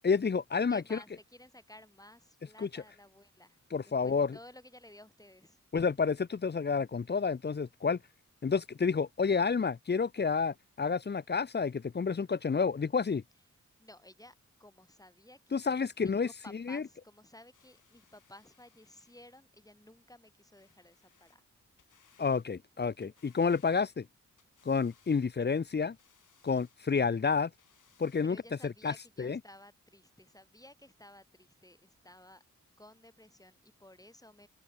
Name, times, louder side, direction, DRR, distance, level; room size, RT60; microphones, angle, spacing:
voice 1, 0.0-1.0 2.6-2.8 3.7-4.4 5.7-8.0 8.4-13.2 15.5-16.3 16.7-16.8 22.2-24.1 24.6-26.0 26.4-27.5 28.0-28.4 28.6-29.4, left 5 dB, 35° left, 0.7 m, -30 dB
voice 2, 0.7-5.6 9.3-9.5 13.8-21.4 28.2-32.4 32.8-34.5, left 1 dB, 10° left, 4.8 m, -55 dB
sound 1, 17.5-19.5 20.6-21.4 21.8-22.5 22.8-24.1 24.4-25.3 25.8-26.8 27.4-28.3 29.0-29.1, left 8 dB, 90° left, 7.1 m, -67 dB
cardioid pair, 60°, 30 cm